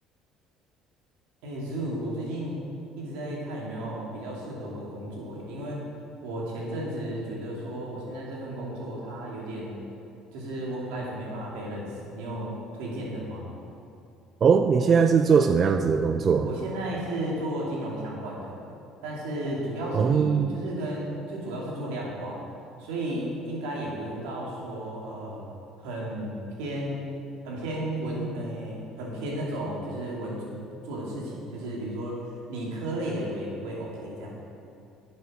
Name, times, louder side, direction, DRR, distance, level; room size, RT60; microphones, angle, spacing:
voice 1, 1.4-2.6 3.0-5.8 6.2-9.7 10.3-13.5 16.4-18.6 19.0-22.4 22.8-25.5 25.8-27.1 27.4-32.2 32.5-34.4, right 1 dB, 85° right, -4 dB, 2.6 m, -34 dB
voice 2, 14.4-16.5 19.9-20.7, right 6 dB, 45° right, 7 dB, 0.5 m, -21 dB
9.3 x 6.8 x 6.4 m, 2.5 s
supercardioid pair, 80°, 0 cm